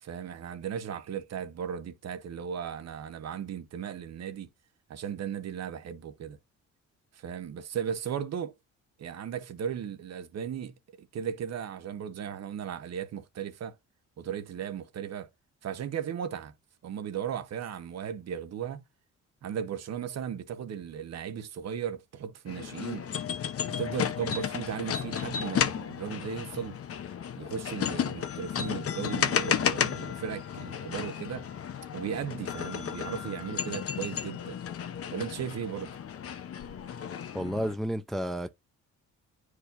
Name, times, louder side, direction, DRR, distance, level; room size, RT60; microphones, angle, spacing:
voice 1, 0.0-4.5 4.9-6.4 7.1-8.5 9.0-13.8 14.2-15.3 15.6-16.5 16.8-18.8 19.4-23.1 23.8-26.8 27.4-31.5 31.9-34.6 35.1-35.9, right 8 dB, 60° right, 1.0 m, -36 dB
sound 1, 22.5-37.8, left 8 dB, 50° left, 0.8 m, -33 dB
voice 2, 37.3-38.5, equal, ahead, 0.5 m, -31 dB
9.8 x 4.8 x 2.6 m
cardioid pair, 90°, 30 cm